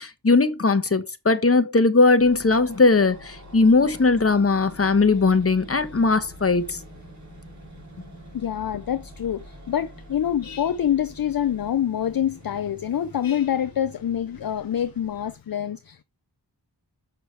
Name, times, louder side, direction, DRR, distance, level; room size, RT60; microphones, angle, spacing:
voice 1, 0.0-6.8, left 3 dB, 35° left, 1.1 m, -19 dB
sound 1, 2.2-15.3, equal, 40° right, 4.5 m, -46 dB
voice 2, 8.3-16.0, left 10 dB, 55° left, 0.6 m, -26 dB
6.6 x 6.3 x 3.3 m
wide cardioid pair, 60°, 42 cm